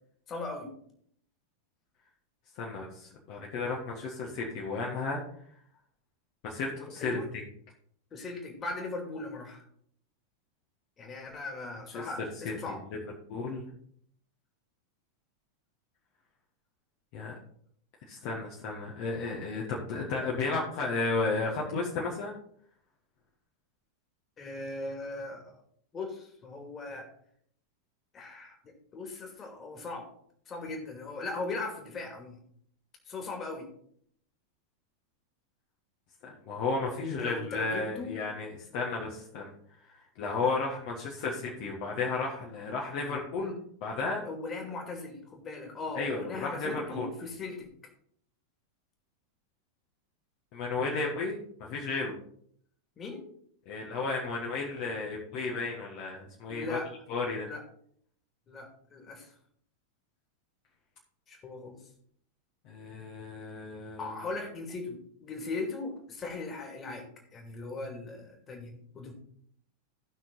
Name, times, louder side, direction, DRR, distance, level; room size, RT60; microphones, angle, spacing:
voice 1, 0.3-0.7 7.0-7.2 8.1-9.6 11.0-12.8 24.4-25.6 25.9-27.1 28.1-30.1 30.5-32.4 33.1-33.7 37.2-38.1 40.4-40.6 43.4-43.5 44.2-47.7 53.0-53.3 56.5-56.9 57.4-57.6 58.5-59.3 61.3-61.8 64.0-67.0 67.3-69.1, left 3 dB, 25° left, 2 dB, 2.6 m, -39 dB
voice 2, 2.6-5.2 6.4-7.2 11.9-13.0 13.3-13.6 17.1-17.3 18.1-22.4 36.2-39.5 40.2-43.6 43.8-44.2 46.0-47.1 50.5-52.1 53.7-56.8 57.1-57.5 62.7-64.2, left 3 dB, 45° left, -2 dB, 1.7 m, -33 dB
15.5 x 6.0 x 3.9 m, 0.65 s
figure-of-eight pair, 90°, 0 cm